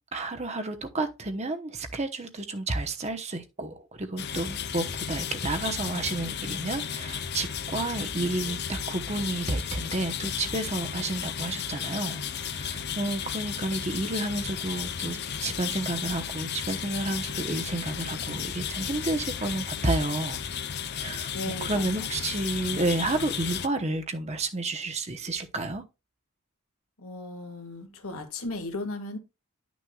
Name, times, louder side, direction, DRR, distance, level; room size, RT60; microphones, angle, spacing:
voice 1, 0.1-20.4 20.9-21.3 21.6-25.8, right 2 dB, 30° right, 0.9 m, -31 dB
sound 1, 4.2-23.7, left 8 dB, 50° left, 0.6 m, -34 dB
voice 2, 21.3-22.2 27.0-29.2, left 2 dB, 75° left, 1.8 m, -36 dB
11.5 x 6.2 x 2.3 m
head